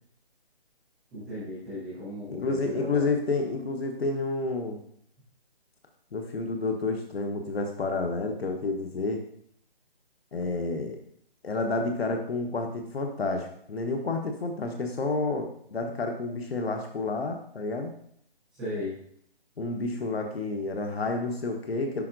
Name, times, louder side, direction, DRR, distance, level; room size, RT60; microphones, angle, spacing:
voice 1, 1.1-3.1 18.6-18.9, left 1 dB, 5° right, -16 dB, 0.9 m, -36 dB
voice 2, 2.3-4.8 6.1-9.2 10.3-11.0 11.4-17.9 19.6-22.0, left 3 dB, 80° left, 3 dB, 1.1 m, -30 dB
11.0 x 4.3 x 2.6 m, 0.66 s
hypercardioid pair, 175°, 30 cm